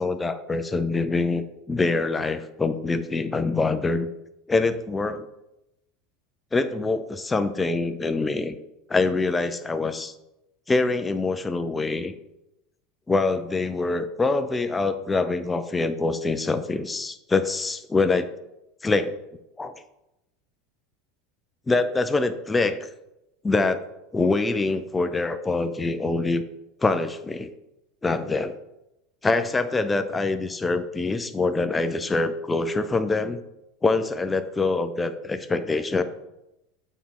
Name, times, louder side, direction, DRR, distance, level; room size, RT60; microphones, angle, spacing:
voice 1, 0.0-4.1 4.5-5.3 6.5-8.5 8.9-10.1 10.7-12.1 13.1-18.3 18.8-19.1 19.6-19.7 21.7-22.8 23.4-23.8 24.1-26.4 26.8-27.5 28.0-28.5 29.2-33.4 33.8-36.0, left 3 dB, 15° left, 10 dB, 0.5 m, -24 dB
8.3 x 4.3 x 3.7 m, 0.91 s
supercardioid pair, 120°, 0 cm